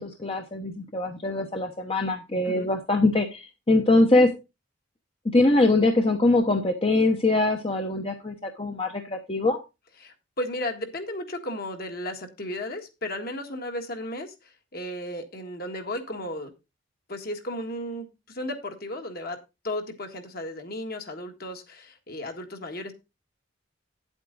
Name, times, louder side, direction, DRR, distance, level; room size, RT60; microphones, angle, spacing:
voice 1, 0.0-4.3 5.3-9.6, left 2 dB, 25° left, 4 dB, 0.9 m, -23 dB
voice 2, 10.0-16.5 17.1-19.4 19.6-22.9, left 1 dB, 45° left, 5 dB, 1.6 m, -34 dB
9.5 x 8.1 x 3.9 m, 0.26 s
head